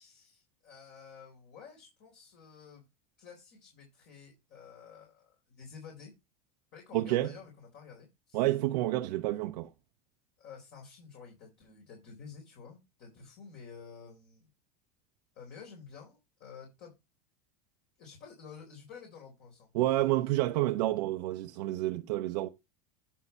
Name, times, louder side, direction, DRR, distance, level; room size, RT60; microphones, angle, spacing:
voice 1, 0.0-2.8 3.2-6.1 6.7-8.5 10.4-14.5 15.3-16.9 18.0-19.7, left 6 dB, 50° left, 3.9 m, -51 dB
voice 2, 6.9-7.3 8.3-9.7 19.7-22.5, right 16 dB, 75° right, 0.8 m, -29 dB
10.0 x 5.6 x 4.3 m
supercardioid pair, 115°, 21 cm